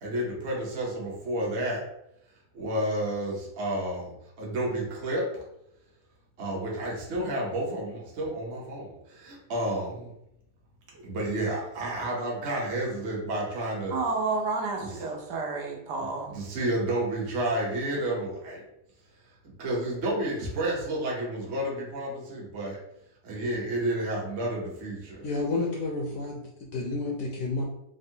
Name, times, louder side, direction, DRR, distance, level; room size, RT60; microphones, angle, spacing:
voice 1, 0.0-1.8 2.5-5.4 6.4-10.1 10.9-14.0 14.8-15.1 16.0-18.6 19.4-22.8 23.2-25.3 26.1-26.2, right 1 dB, 55° right, -4 dB, 0.8 m, -31 dB
voice 2, 13.9-16.3, right 3 dB, 90° right, -1 dB, 1.3 m, -30 dB
voice 3, 25.2-26.4 26.7-27.6, left 3 dB, 70° left, -2 dB, 0.8 m, -30 dB
3.5 x 2.1 x 2.7 m, 0.78 s
omnidirectional pair, 1.8 m